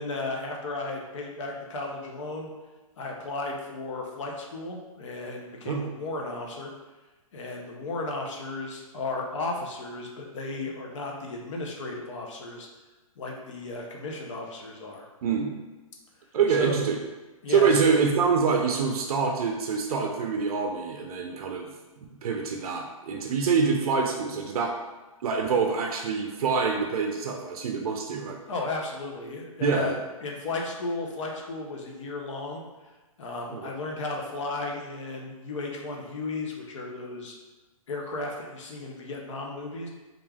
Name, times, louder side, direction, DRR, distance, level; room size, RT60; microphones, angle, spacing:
voice 1, 0.0-2.5 3.0-6.7 7.3-12.7 13.2-15.1 16.6-16.8 17.4-18.0 28.5-29.9 30.2-32.6 33.2-37.3 37.9-39.9, left 3 dB, 55° left, 0 dB, 0.6 m, -34 dB
voice 2, 15.2-15.5 16.3-17.0 17.5-21.7 22.0-24.7 25.2-28.4 29.6-30.0 33.5-33.7, right 5 dB, 85° right, 1 dB, 0.4 m, -25 dB
3.2 x 2.4 x 2.3 m, 1.2 s
hypercardioid pair, 165°, 18 cm